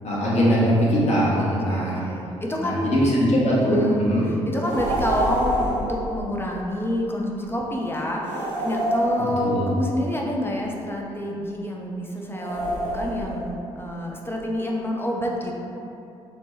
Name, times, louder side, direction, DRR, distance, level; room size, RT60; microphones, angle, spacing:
voice 1, 0.0-2.0 2.6-4.3 9.2-9.7, equal, 45° left, -6 dB, 0.9 m, -21 dB
voice 2, 1.3-2.9 3.7-4.1 4.5-15.6, left 1 dB, 15° left, -1 dB, 0.5 m, -28 dB
sound 1, 4.6-6.0 8.2-9.7 12.3-13.5, right 1 dB, 80° right, 0.5 m, -26 dB
4.0 x 2.2 x 3.0 m, 2.7 s
figure-of-eight pair, 45°, 16 cm